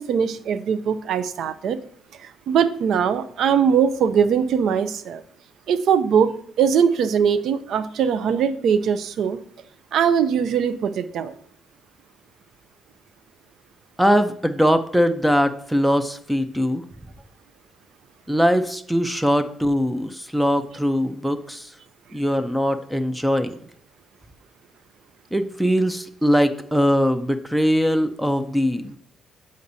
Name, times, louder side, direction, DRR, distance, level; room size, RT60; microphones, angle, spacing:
voice 1, 0.0-1.8 2.2-5.2 5.7-9.4 9.9-11.3, right 7 dB, 75° right, 13 dB, 0.4 m, -21 dB
voice 2, 14.0-16.8 18.3-21.7 22.1-23.5 25.3-29.0, equal, 5° right, 10 dB, 0.5 m, -21 dB
8.3 x 5.1 x 2.7 m, 0.63 s
cardioid pair, 90°, 0 cm